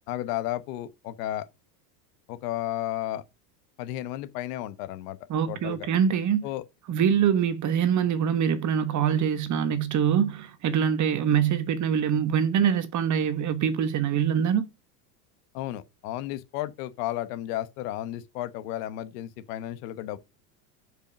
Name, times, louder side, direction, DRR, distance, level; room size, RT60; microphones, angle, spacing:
voice 1, 0.1-1.4 2.3-3.2 3.8-5.2 5.5-5.9 6.4-6.6 15.5-20.2, left 14 dB, 70° left, 1.2 m, -33 dB
voice 2, 5.3-6.5 6.9-14.7, right 8 dB, 35° right, 1.3 m, -24 dB
7.2 x 5.5 x 6.1 m
supercardioid pair, 120°, 48 cm